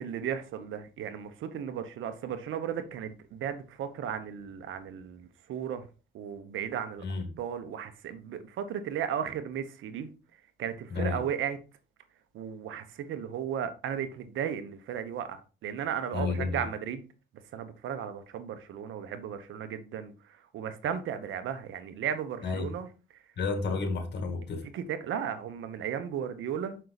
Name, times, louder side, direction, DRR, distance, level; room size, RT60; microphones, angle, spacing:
voice 1, 0.0-5.8 6.1-7.0 7.4-10.1 10.6-11.6 12.3-17.0 17.5-22.9 24.7-26.8, right 8 dB, 80° right, 1.2 m, -35 dB
voice 2, 7.0-7.3 10.9-11.2 16.1-16.7 22.4-22.8 23.4-24.7, left 4 dB, 60° left, 2.1 m, -31 dB
6.5 x 5.6 x 4.1 m
cardioid pair, 90°, 20 cm